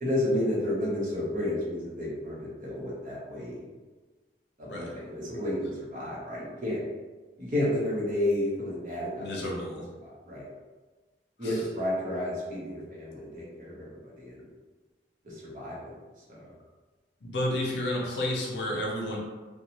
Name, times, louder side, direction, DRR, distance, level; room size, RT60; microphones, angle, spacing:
voice 1, 0.0-3.6 4.6-6.8 7.4-9.3 10.0-10.5 11.4-13.8 14.1-14.4 15.2-15.9 16.3-16.5, left 1 dB, 45° right, -6 dB, 0.8 m, -31 dB
voice 2, 9.2-9.9 11.4-11.7 17.2-19.2, left 1 dB, 75° left, -2 dB, 0.6 m, -31 dB
2.6 x 2.3 x 2.9 m, 1.3 s
head